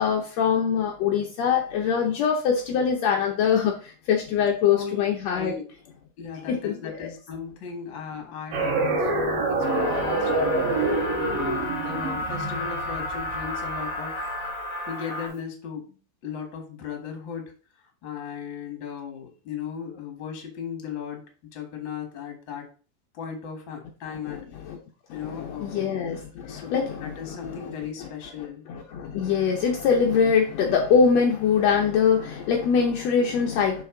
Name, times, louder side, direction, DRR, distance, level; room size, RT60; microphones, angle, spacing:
voice 1, 0.0-5.5 6.5-7.1 24.3-24.8 25.1-27.7 28.0-28.1 28.7-33.8, left 6 dB, 75° left, 1.5 m, -23 dB
voice 2, 5.3-5.6 6.2-14.2 14.9-17.5 18.0-21.2 21.5-22.7 23.1-24.4 25.1-26.0 26.5-28.6, left 7 dB, 45° left, 1.8 m, -37 dB
sound 1, 8.5-13.8, right 2 dB, 80° right, 3.2 m, -26 dB
sound 2, 9.6-15.3, left 2 dB, 25° left, 2.3 m, -32 dB
6.8 x 5.3 x 3.8 m
omnidirectional pair, 4.0 m